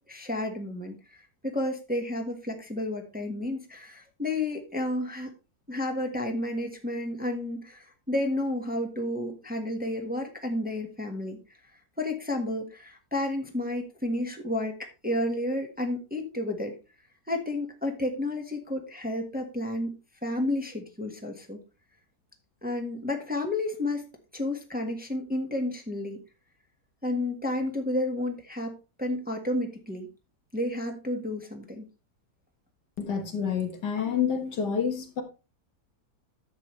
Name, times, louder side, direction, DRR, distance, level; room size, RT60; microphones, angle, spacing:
voice 1, 0.1-5.3 5.7-11.4 12.0-16.7 17.3-20.0 20.2-21.6 22.6-24.1 24.3-26.2 27.0-30.1 30.5-31.9, left 1 dB, 5° right, 1.3 m, -31 dB
voice 2, 33.0-35.2, left 7 dB, 80° left, 2.1 m, -28 dB
10.5 x 7.6 x 3.2 m
omnidirectional pair, 1.8 m